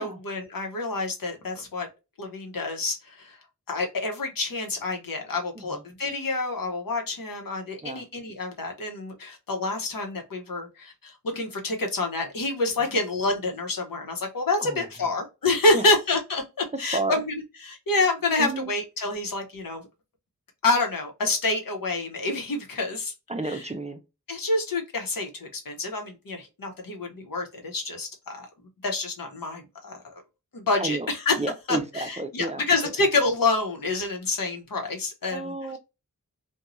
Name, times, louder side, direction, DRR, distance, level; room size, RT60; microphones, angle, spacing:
voice 1, 0.0-1.9 2.2-3.4 3.7-19.8 20.6-23.1 23.5-23.6 24.3-28.5 28.8-30.0 30.5-31.3 31.7-35.5, left 2 dB, 75° left, 0.9 m, -27 dB
voice 2, 18.4-18.7 23.3-24.0 30.8-31.1 31.4-32.9 35.3-35.8, right 2 dB, 20° right, 0.4 m, -31 dB
2.5 x 2.2 x 2.9 m
wide cardioid pair, 55°, 34 cm